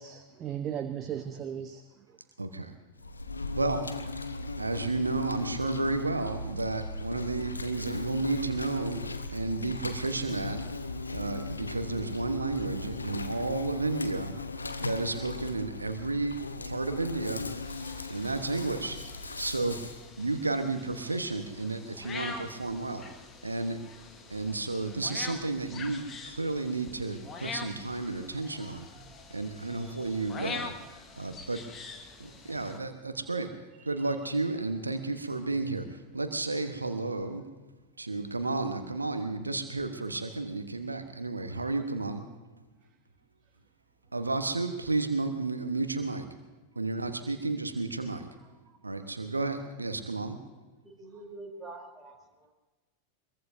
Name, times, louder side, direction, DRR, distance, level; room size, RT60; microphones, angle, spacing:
voice 1, 0.0-1.8 22.2-22.4, right 9 dB, 30° right, 9 dB, 0.8 m, -37 dB
voice 2, 2.4-2.7 3.6-3.9 4.6-9.0 9.3-10.7 11.1-14.3 14.8-17.5 18.1-19.0 19.4-23.1 23.4-23.8 24.3-28.9 29.3-30.8 31.2-31.7 32.2-33.5 33.8-37.4 38.0-42.2 44.1-46.3 46.7-48.3 48.8-50.4, right 3 dB, 80° right, 8 dB, 1.1 m, -32 dB
Insect, 3.0-20.0, left 3 dB, 80° left, 0.9 m, -38 dB
sound 1, 17.6-32.8, left 4 dB, 20° left, 1.7 m, -45 dB
voice 3, 50.8-52.5, right 2 dB, 10° right, -1 dB, 3.5 m, -46 dB
22.5 x 22.5 x 2.7 m, 1.2 s
figure-of-eight pair, 90°, 0 cm